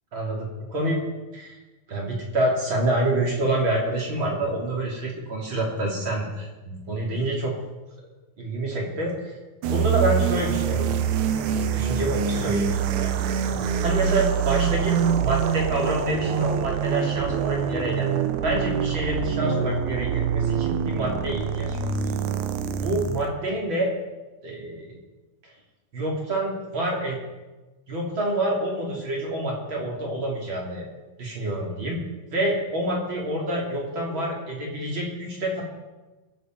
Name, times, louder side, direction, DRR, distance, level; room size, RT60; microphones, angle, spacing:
voice 1, 0.1-1.0 1.3-1.6 1.9-7.5 8.4-9.3 9.7-10.9 11.7-13.1 13.8-18.1 18.4-21.9 22.8-23.9 24.4-25.0 25.9-27.2 27.9-30.8 31.2-32.0 32.3-35.6, right 1 dB, 35° right, -2 dB, 3.8 m, -27 dB
sound 1, 9.6-23.3, right 7 dB, 75° right, 1.8 m, -25 dB
23.5 x 8.5 x 4.8 m, 1.2 s
omnidirectional pair, 4.2 m